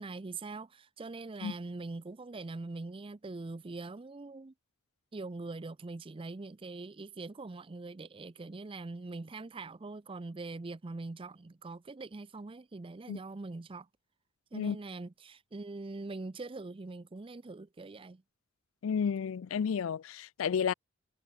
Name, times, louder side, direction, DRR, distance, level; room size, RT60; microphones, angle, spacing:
voice 1, 0.0-4.5 5.1-13.9 14.5-18.2, right 3 dB, 25° right, 0.5 m, -43 dB
voice 2, 18.8-20.7, left 7 dB, 75° left, 0.4 m, -31 dB
head